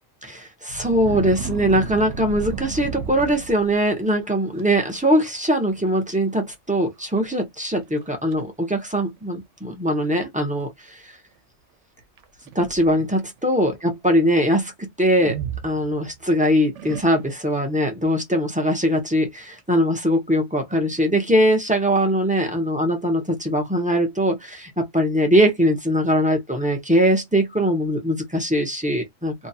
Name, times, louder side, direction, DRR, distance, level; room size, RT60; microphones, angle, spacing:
voice 1, 0.2-11.1 12.5-29.3, equal, 10° right, 0.5 m, -21 dB
sound 1, 0.7-4.0 4.6-4.8 5.2-5.6 5.9-6.0 6.7-6.8 7.3-7.4 8.0-8.4 9.2-9.3 12.2-13.2 15.2-16.3 16.8-17.5, right 6 dB, 80° right, 0.9 m, -33 dB
2.7 x 2.2 x 2.7 m
omnidirectional pair, 1.2 m